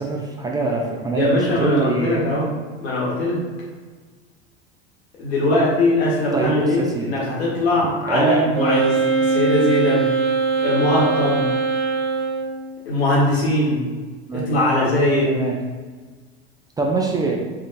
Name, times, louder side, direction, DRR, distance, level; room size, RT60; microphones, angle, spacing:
voice 1, 0.0-2.2 5.5-5.6 6.3-7.1 8.1-8.5 14.3-14.5 15.3-15.6 16.8-17.4, right 3 dB, 15° right, -1 dB, 0.3 m, -23 dB
voice 2, 1.2-2.5 2.8-3.4 5.2-10.1 10.6-11.5 12.8-13.8 14.3-15.4, left 1 dB, 80° left, -5 dB, 1.2 m, -20 dB
Wind instrument woodwind instrument, 8.5-12.6, right 4 dB, 40° right, 1.4 m, -21 dB
3.4 x 2.8 x 2.5 m, 1.4 s
hypercardioid pair, 85°, 32 cm